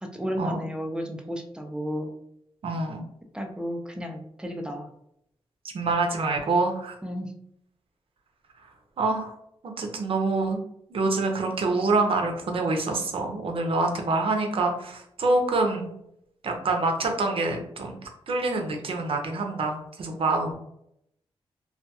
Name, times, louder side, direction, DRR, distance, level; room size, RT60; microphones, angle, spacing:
voice 1, 0.0-2.1 3.3-4.9 7.0-7.3, equal, 10° right, 3 dB, 0.4 m, -33 dB
voice 2, 2.6-3.0 5.7-6.9 9.0-9.3 9.6-10.6 10.9-15.9 16.4-20.5, right 3 dB, 60° right, 2 dB, 0.6 m, -26 dB
2.4 x 2.2 x 2.7 m, 0.75 s
wide cardioid pair, 100°, 10 cm